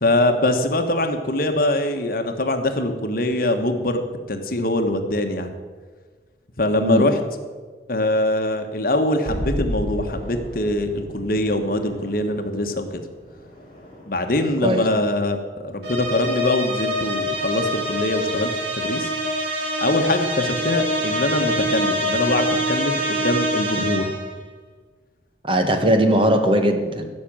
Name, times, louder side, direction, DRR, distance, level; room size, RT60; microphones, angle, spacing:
voice 1, 0.0-4.0 4.3-5.6 6.6-7.2 7.9-13.0 14.0-19.1 19.8-24.1, left 1 dB, 50° left, 6 dB, 1.3 m, -23 dB
sound 1, 9.3-14.4, equal, 30° left, 4.2 m, -33 dB
sound 2, 15.8-24.3, equal, 70° right, 2.9 m, -25 dB
voice 2, 25.4-27.1, right 1 dB, 30° right, 6 dB, 1.2 m, -19 dB
15.5 x 6.6 x 8.8 m, 1.5 s
head